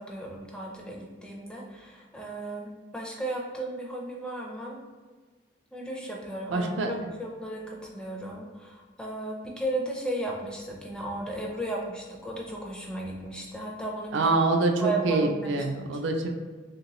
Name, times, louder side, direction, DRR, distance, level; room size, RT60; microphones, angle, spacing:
voice 1, 0.0-4.8 5.7-14.3 14.8-15.7, right 2 dB, 5° left, -2 dB, 0.4 m, -35 dB
voice 2, 6.5-6.9 14.1-16.3, right 2 dB, 70° right, 3 dB, 0.4 m, -25 dB
3.0 x 2.8 x 3.0 m, 1.4 s
head